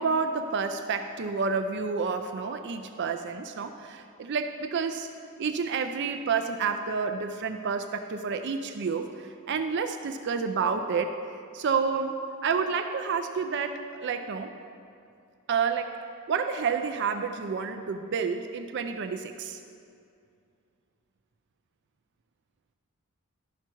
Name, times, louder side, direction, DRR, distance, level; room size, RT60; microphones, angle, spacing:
voice 1, 0.0-5.1 5.4-11.2 11.5-12.2 12.4-14.5 15.5-16.0 16.3-19.6, right 5 dB, 50° right, 7 dB, 0.4 m, -29 dB
12.5 x 5.7 x 4.5 m, 2.4 s
head